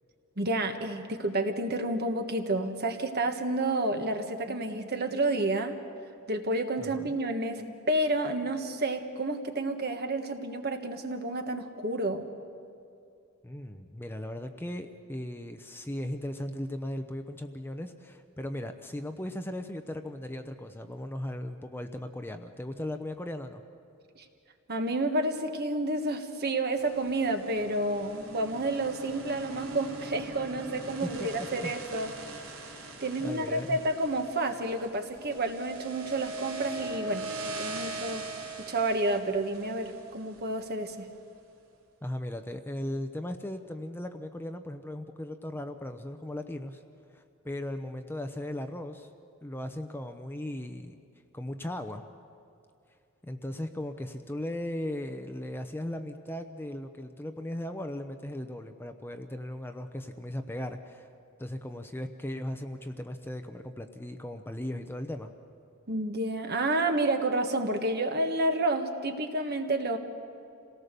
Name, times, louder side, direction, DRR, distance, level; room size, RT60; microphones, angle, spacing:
voice 1, 0.4-5.7 6.3-12.3 24.2-24.3 24.7-32.1 33.0-38.2 38.7-41.1 65.9-70.0, right 2 dB, 50° right, 5 dB, 1.6 m, -30 dB
voice 2, 6.8-7.2 13.4-23.6 31.0-31.7 33.2-33.8 42.0-46.8 47.1-49.1 49.4-51.0 51.3-52.0 53.2-61.1 61.4-65.3, left 1 dB, 10° left, 6 dB, 0.7 m, -37 dB
sound 1, 26.7-40.9, right 3 dB, 75° right, 3.2 m, -41 dB
27.5 x 18.0 x 6.8 m, 2.5 s
head